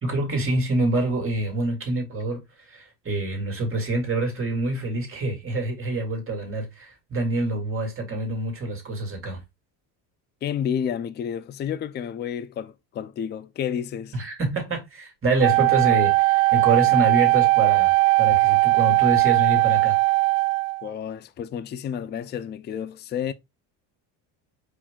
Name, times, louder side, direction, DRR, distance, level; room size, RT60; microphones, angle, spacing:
voice 1, 0.0-9.4 14.1-20.0, right 2 dB, 25° right, 2.3 m, -26 dB
voice 2, 10.4-14.2 20.8-23.3, left 8 dB, 25° left, 0.3 m, -30 dB
Wind instrument woodwind instrument, 15.4-20.9, right 22 dB, 70° right, 0.6 m, -19 dB
4.8 x 2.6 x 3.6 m
cardioid pair, 105°, 47 cm